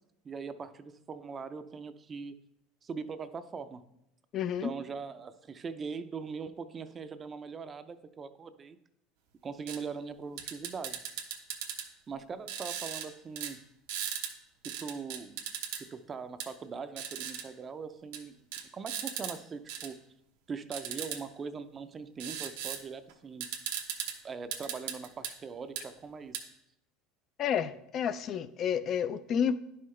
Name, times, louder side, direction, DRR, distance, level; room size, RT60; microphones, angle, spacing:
voice 1, 0.2-2.4 2.8-3.8 4.6-8.8 9.4-11.0 12.1-13.6 14.6-15.4 15.8-18.5 18.7-20.0 20.5-23.5 24.2-26.4, right 5 dB, 30° right, 0.5 m, -41 dB
voice 2, 4.3-4.7 27.4-29.6, left 8 dB, 45° left, 0.3 m, -30 dB
sound 1, 9.7-9.8 10.4-11.9 12.5-13.1 13.4-13.5 13.9-14.3 14.6-15.8 16.4-16.5 17.0-17.4 18.1-18.2 18.5-19.3 19.7-19.9 20.7-21.2 22.2-22.8 23.1-23.2 23.4-24.1 24.5-25.3 25.8-25.9 26.3-26.4, right 9 dB, 85° right, 0.9 m, -37 dB
10.5 x 5.6 x 3.2 m
supercardioid pair, 120°, 0 cm